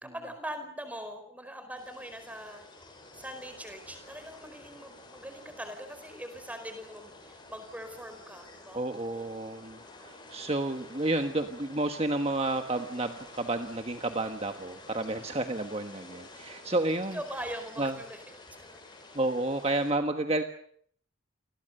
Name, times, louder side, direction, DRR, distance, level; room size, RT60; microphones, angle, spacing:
voice 1, 0.0-2.7 3.1-9.3 17.1-18.2 18.6-18.8, equal, 5° right, 8 dB, 4.7 m, -42 dB
sound 1, 1.8-19.9, left 2 dB, 20° left, 7.4 m, -50 dB
voice 2, 8.7-17.2 17.8-18.0 19.1-20.4, right 2 dB, 30° right, 6 dB, 1.4 m, -31 dB
29.0 x 21.5 x 6.7 m, 0.64 s
head